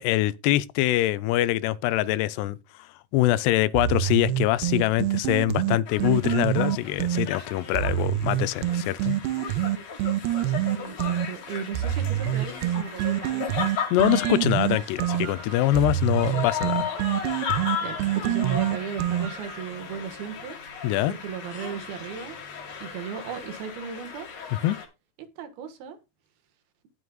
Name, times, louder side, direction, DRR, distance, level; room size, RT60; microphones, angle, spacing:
voice 1, 0.0-2.6 3.1-9.2 13.9-16.9 20.8-21.1 24.6-24.8, left 15 dB, 90° left, 2.7 m, -24 dB
sound 1, 3.8-7.3 7.8-11.3 11.8-19.6, right 13 dB, 85° right, 2.9 m, -26 dB
sound 2, 5.9-24.9, left 7 dB, 50° left, 2.6 m, -36 dB
voice 2, 10.7-13.6 14.3-14.5 16.0-16.4 17.8-20.6 21.1-22.4 22.8-24.3 25.4-26.0, right 7 dB, 70° right, 3.1 m, -36 dB
17.5 x 6.4 x 2.3 m
omnidirectional pair, 4.7 m